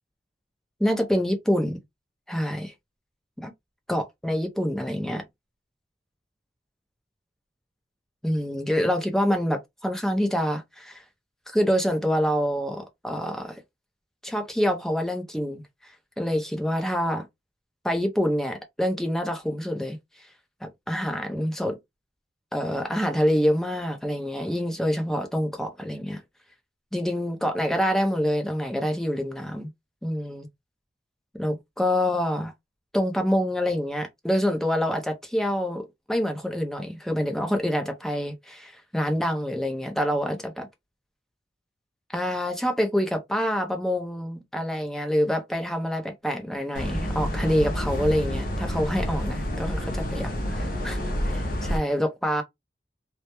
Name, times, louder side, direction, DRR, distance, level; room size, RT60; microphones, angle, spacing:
voice 1, 0.8-1.8 2.3-2.7 3.4-3.5 3.9-5.2 8.2-11.0 11.5-13.6 14.2-17.3 17.8-20.0 20.6-21.8 22.5-26.2 26.9-29.7 30.0-30.5 31.4-32.5 32.9-40.7 42.1-51.0 51.3-52.4, equal, ahead, 0.5 m, -26 dB
sound 1, 46.7-51.8, equal, 50° left, 0.6 m, -28 dB
2.2 x 2.0 x 2.8 m
head